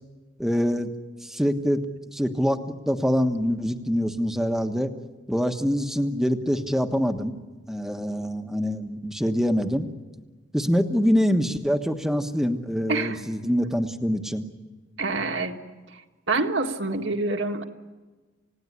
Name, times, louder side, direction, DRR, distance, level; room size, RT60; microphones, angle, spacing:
voice 1, 0.4-0.9 1.2-1.8 2.1-2.6 2.9-4.9 5.3-7.3 7.7-9.9 10.5-14.4, equal, ahead, 6 dB, 1.3 m, -24 dB
voice 2, 12.9-13.2 15.0-15.6 15.9-16.0 16.3-17.6, right 3 dB, 70° right, 3 dB, 2.0 m, -26 dB
29.0 x 17.0 x 9.9 m, 1.3 s
head